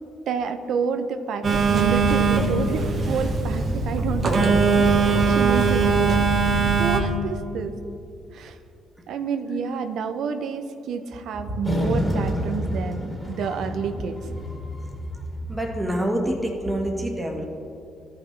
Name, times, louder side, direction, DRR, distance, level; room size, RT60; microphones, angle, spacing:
voice 1, 0.3-6.5 6.8-7.7 8.3-8.6 9.1-14.2, right 6 dB, 75° right, 8 dB, 0.5 m, -29 dB
Telephone, 1.4-7.0, right 4 dB, 50° right, 1.1 m, -20 dB
sound 1, 11.6-16.2, equal, 10° left, 2.0 m, -29 dB
voice 2, 15.5-17.5, right 1 dB, 10° right, 0 dB, 1.4 m, -26 dB
13.5 x 5.7 x 3.2 m, 2.6 s
cardioid pair, 90°, 0 cm